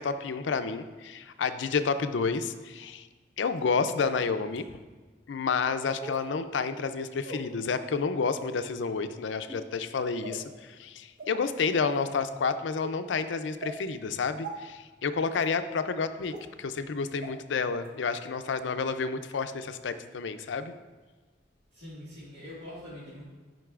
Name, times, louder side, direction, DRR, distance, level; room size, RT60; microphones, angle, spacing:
voice 1, 0.0-3.1 3.4-4.8 5.3-16.3 16.6-20.7, left 5 dB, 85° left, 10 dB, 0.4 m, -30 dB
sound 1, 3.5-3.6 4.5-4.6 6.0-6.2 7.2-7.4 8.2-8.4 9.4-9.7 10.2-10.5 11.2-11.3 11.9-12.1 12.8-12.9 13.6-13.7 14.4-14.5 15.4-15.5 16.3-16.4 17.2-17.3 17.8-17.9, right 2 dB, 45° right, 1.0 m, -40 dB
voice 2, 21.7-23.2, left 1 dB, 70° right, -10 dB, 1.8 m, -44 dB
12.0 x 5.2 x 2.4 m, 1.3 s
head